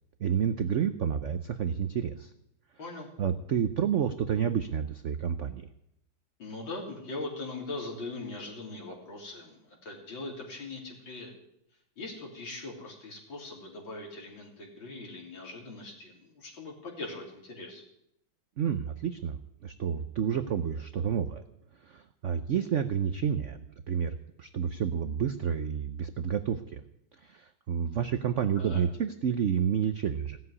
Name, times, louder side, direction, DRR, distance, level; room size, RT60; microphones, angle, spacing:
voice 1, 0.2-2.3 3.2-5.7 18.6-21.4 21.8-26.8 27.2-30.4, right 8 dB, 80° right, 9 dB, 0.6 m, -30 dB
voice 2, 2.8-3.1 6.4-11.3 12.0-17.8 28.6-28.8, left 2 dB, 70° left, 0 dB, 4.0 m, -41 dB
16.0 x 7.8 x 9.7 m, 0.80 s
omnidirectional pair, 2.2 m